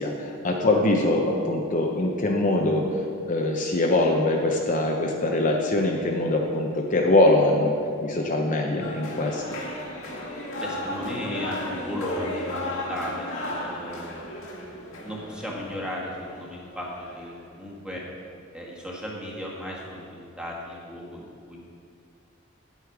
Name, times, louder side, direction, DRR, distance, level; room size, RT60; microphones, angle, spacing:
voice 1, 0.0-2.9 3.3-7.7 8.0-9.4, left 2 dB, 40° left, 0 dB, 0.8 m, -23 dB
sound 1, 8.8-17.3, left 1 dB, 80° left, 2.0 m, -35 dB
voice 2, 10.6-13.3 13.6-14.3 15.0-18.0 18.5-21.6, equal, 5° right, -4 dB, 1.6 m, -35 dB
9.7 x 8.2 x 4.8 m, 2.3 s
head